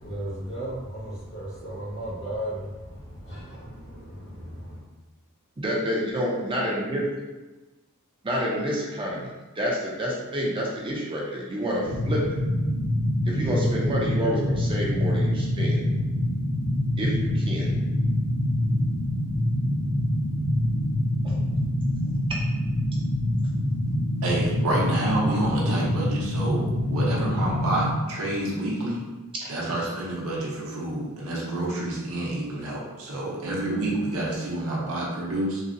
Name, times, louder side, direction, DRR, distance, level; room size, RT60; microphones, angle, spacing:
voice 1, 0.0-4.8, right 1 dB, 65° left, 1.4 m, -35 dB
voice 2, 5.6-7.0 8.2-12.2 13.3-15.8 17.0-17.7 21.2-21.4 29.4-29.5, equal, 25° right, 0.5 m, -28 dB
sound 1, 11.8-27.9, left 1 dB, 35° left, 0.8 m, -25 dB
voice 3, 24.2-29.0 29.5-35.6, right 1 dB, 70° right, 0.8 m, -28 dB
3.8 x 2.0 x 2.5 m
head